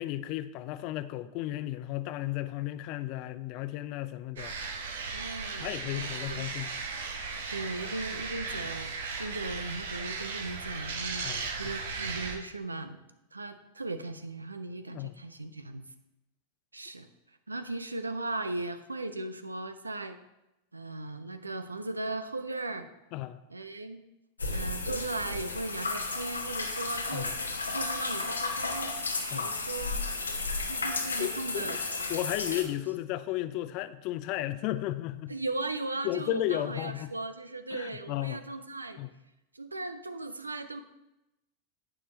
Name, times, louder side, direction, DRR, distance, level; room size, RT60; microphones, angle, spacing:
voice 1, 0.0-4.5 5.6-6.7 11.2-11.8 14.9-15.1 23.1-23.4 27.1-27.4 29.3-29.5 31.2-31.8 32.1-35.3 36.0-37.1 37.7-38.4 39.0-39.1, left 14 dB, 45° left, 14 dB, 0.5 m, -34 dB
sound 1, 4.4-12.4, right 4 dB, 65° right, 1.3 m, -36 dB
voice 2, 5.1-6.5 7.5-11.3 11.6-13.0 13.3-15.9 16.7-17.1 17.5-20.2 20.7-22.9 23.5-24.0 24.5-27.3 27.7-29.0 29.3-30.0 30.7-31.8 35.3-39.0 39.5-40.8, right 2 dB, 80° right, 10 dB, 0.7 m, -37 dB
sound 2, 24.4-32.6, left 3 dB, 80° left, 1.2 m, -33 dB
11.0 x 8.8 x 3.2 m, 0.93 s
figure-of-eight pair, 90°, 0 cm